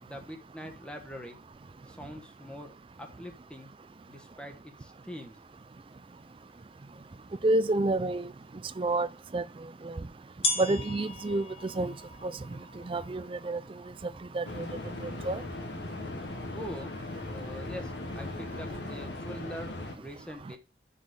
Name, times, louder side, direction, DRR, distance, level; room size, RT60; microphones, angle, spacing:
voice 1, 0.0-1.4 1.9-2.7 3.0-3.7 4.1-5.4 16.5-16.9 17.2-20.6, equal, 5° left, 1.1 m, -43 dB
sound 1, 6.5-6.6 7.4-7.5 9.2-9.3 10.4-16.0, left 2 dB, 35° left, 1.4 m, -38 dB
voice 2, 7.4-8.3 8.8-9.1 9.3-9.4 9.8-10.0 10.6-11.9 12.2-12.3 12.9-13.6 14.3-14.7 15.2-15.4, right 2 dB, 30° right, 0.4 m, -28 dB
sound 2, 14.4-19.9, left 2 dB, 75° left, 1.4 m, -38 dB
5.9 x 5.4 x 6.3 m
head